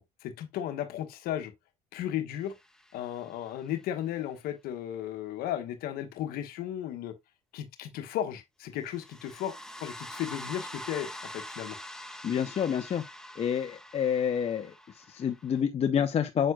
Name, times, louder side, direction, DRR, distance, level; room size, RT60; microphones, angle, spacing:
voice 1, 0.0-1.5 1.9-2.5 2.9-7.1 7.5-9.5 9.8-11.8, left 11 dB, 75° left, 1.1 m, -35 dB
sound 1, 2.5-3.6 8.8-15.6, left 1 dB, 5° left, 1.2 m, -45 dB
voice 2, 12.2-13.0 13.4-16.5, left 8 dB, 40° left, 0.7 m, -28 dB
7.6 x 6.3 x 2.3 m
supercardioid pair, 80°, 15 cm